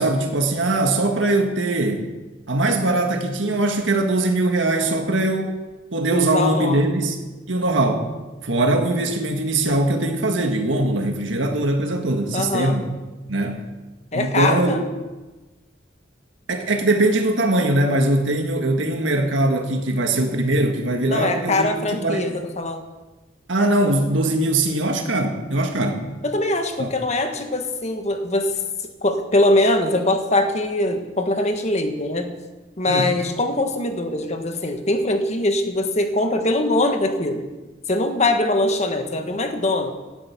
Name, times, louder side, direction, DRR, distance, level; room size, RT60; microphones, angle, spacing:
voice 1, 0.0-2.1 2.5-5.5 5.9-7.2 7.5-8.1 8.4-12.8 13.3-13.7 14.1-14.8 16.5-21.7 22.0-22.3 23.5-26.0 26.8-26.9 32.9-33.1, right 2 dB, 75° right, 4 dB, 1.7 m, -21 dB
voice 2, 6.1-6.9 12.3-12.8 14.1-14.8 21.1-22.8 26.2-28.5 29.0-32.3 32.8-37.5 37.9-39.9, left 1 dB, 35° left, 6 dB, 1.4 m, -22 dB
16.0 x 10.5 x 5.9 m, 1.2 s
head